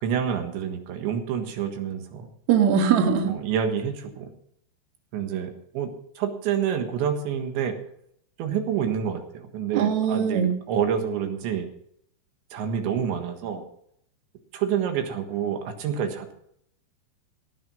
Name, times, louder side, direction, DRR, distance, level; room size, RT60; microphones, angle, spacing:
voice 1, 0.0-2.3 3.2-4.3 5.1-5.9 6.2-7.8 8.4-11.7 12.5-13.6 14.5-16.3, right 8 dB, 80° right, 6 dB, 3.8 m, -28 dB
voice 2, 2.5-3.4 9.7-10.5, right 7 dB, 60° right, 5 dB, 1.9 m, -21 dB
17.0 x 9.4 x 5.3 m, 0.70 s
omnidirectional pair, 5.3 m